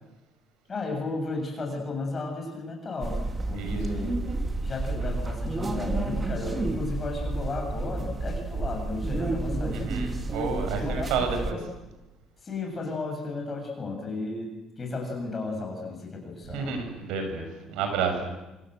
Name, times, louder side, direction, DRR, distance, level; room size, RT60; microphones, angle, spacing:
voice 1, 0.7-3.2 3.5-4.2 4.6-10.0 10.7-11.6 12.4-16.8, left 3 dB, 20° left, 2 dB, 7.7 m, -34 dB
sound 1, 3.0-11.5, right 2 dB, 15° right, 2.0 m, -30 dB
voice 2, 9.8-11.6 16.5-18.4, right 5 dB, 85° right, 6 dB, 6.8 m, -30 dB
27.0 x 26.5 x 7.8 m, 1.0 s
cardioid pair, 170°, 0 cm